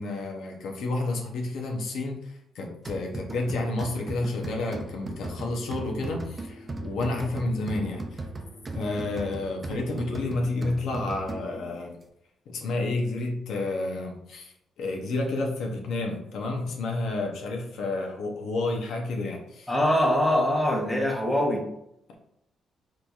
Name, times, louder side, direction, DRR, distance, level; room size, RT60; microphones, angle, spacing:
voice 1, 0.0-8.2 8.7-12.0 12.5-19.7, left 2 dB, 75° left, 1 dB, 0.6 m, -30 dB
sound 1, 2.9-11.7, right 2 dB, 25° right, 0.4 m, -38 dB
voice 2, 19.7-21.6, left 1 dB, 10° left, 0 dB, 0.9 m, -23 dB
3.8 x 3.0 x 2.3 m, 0.79 s
cardioid pair, 90°, 0 cm